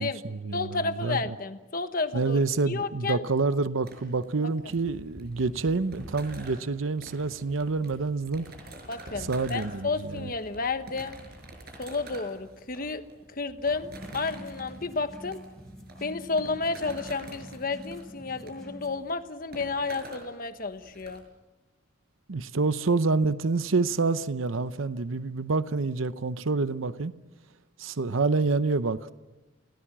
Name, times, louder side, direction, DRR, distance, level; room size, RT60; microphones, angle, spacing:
voice 1, 0.0-1.3 2.1-8.5 9.3-10.3 22.3-27.1 27.8-29.1, right 3 dB, 85° right, 0.8 m, -27 dB
voice 2, 0.5-2.4 2.7-3.2 8.9-11.2 11.8-13.0 13.3-15.4 16.0-21.2, left 3 dB, 45° left, 1.3 m, -31 dB
sound 1, 3.9-21.2, right 1 dB, 50° right, 5.8 m, -46 dB
sound 2, 13.8-19.0, equal, 5° left, 4.3 m, -47 dB
28.0 x 17.5 x 7.4 m
head